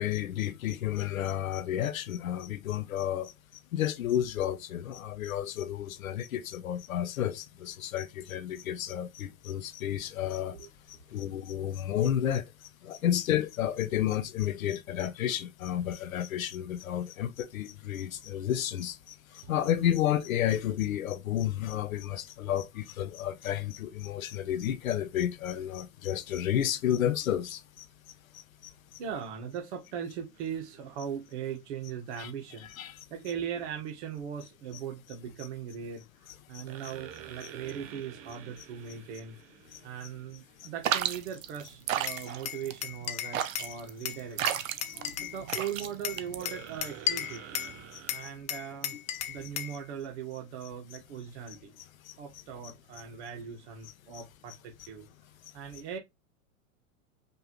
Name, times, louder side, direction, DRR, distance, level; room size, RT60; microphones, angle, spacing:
voice 1, 0.0-3.3 3.7-27.9 28.3-28.7 32.2-32.3 32.6-33.1 35.4-35.5 36.5-36.9 37.4-37.5 38.6-38.7 39.7-40.1 40.6-40.7 43.1-43.2 44.8-45.9 47.6-48.3 48.9-49.5 50.9-51.0 51.5-52.7 53.8-54.6 55.7-55.8, left 11 dB, 85° left, 0.8 m, -32 dB
voice 2, 29.0-36.0 36.5-39.4 39.8-44.6 45.2-47.6 48.1-49.0 49.3-51.7 52.2-54.6 54.9-55.1 55.5-56.0, right 8 dB, 60° right, 1.4 m, -39 dB
sound 1, 30.3-31.0 36.7-40.8 46.4-48.2, right 10 dB, 35° right, 0.8 m, -48 dB
sound 2, 40.8-46.8, right 11 dB, 75° right, 0.8 m, -33 dB
Glass, 42.1-43.7 44.0-45.7 46.0-47.7 48.1-49.8, left 10 dB, 20° left, 0.4 m, -35 dB
5.3 x 2.7 x 3.0 m
hypercardioid pair, 110°, 40 cm